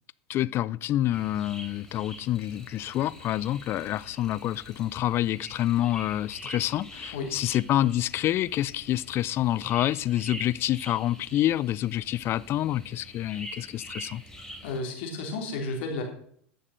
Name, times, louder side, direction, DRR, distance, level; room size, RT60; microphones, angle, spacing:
voice 1, 0.3-14.2, left 13 dB, 40° left, 20 dB, 0.4 m, -27 dB
sound 1, 1.1-14.8, equal, 10° left, 3.2 m, -45 dB
voice 2, 14.6-16.0, left 3 dB, 65° left, 2 dB, 3.2 m, -32 dB
11.0 x 6.6 x 6.4 m, 0.63 s
hypercardioid pair, 95°, 6 cm